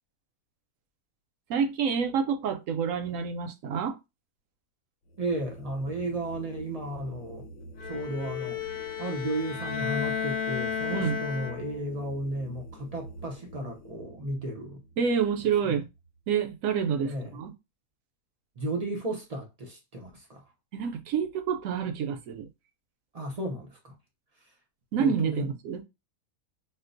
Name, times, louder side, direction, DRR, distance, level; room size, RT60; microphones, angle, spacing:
voice 1, 1.5-4.0 10.9-11.2 15.0-15.9 16.3-17.5 20.7-22.5 24.9-25.8, right 7 dB, 70° right, 0.9 m, -28 dB
sound 1, 5.0-16.4, right 1 dB, 70° left, 0.9 m, -47 dB
voice 2, 5.2-7.5 7.8-8.6 9.0-14.8 15.7-15.8 17.0-17.4 18.6-20.4 23.1-23.9 25.0-25.5, right 1 dB, 50° right, 0.4 m, -34 dB
Bowed string instrument, 7.8-11.9, left 7 dB, 85° left, 0.4 m, -33 dB
4.3 x 2.0 x 2.5 m
omnidirectional pair, 1.6 m